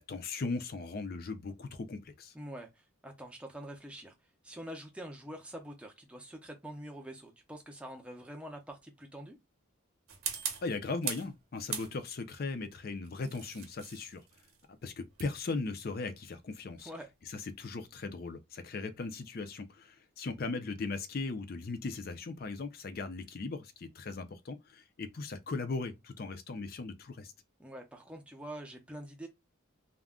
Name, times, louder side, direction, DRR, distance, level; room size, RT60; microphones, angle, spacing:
voice 1, 0.0-2.3 10.6-14.2 14.8-16.9 17.3-27.3, left 3 dB, 45° left, 0.4 m, -38 dB
voice 2, 2.3-4.1 4.4-9.4 16.8-17.1 27.6-29.3, right 1 dB, 5° right, 0.5 m, -45 dB
sound 1, 10.1-11.3 11.7-12.3 13.0-17.8, right 7 dB, 80° right, 0.8 m, -41 dB
2.3 x 2.1 x 3.5 m
head